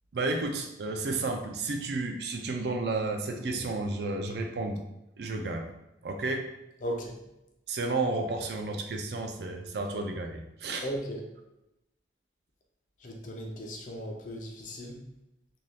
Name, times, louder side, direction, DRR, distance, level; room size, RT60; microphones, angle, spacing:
voice 1, 0.1-4.8 5.2-5.7 6.0-6.5 7.7-10.9, right 3 dB, 65° right, 4 dB, 0.4 m, -32 dB
voice 2, 6.8-7.1 10.8-11.2 13.0-15.0, equal, 45° left, 1 dB, 0.5 m, -36 dB
2.6 x 2.3 x 3.2 m, 0.90 s
head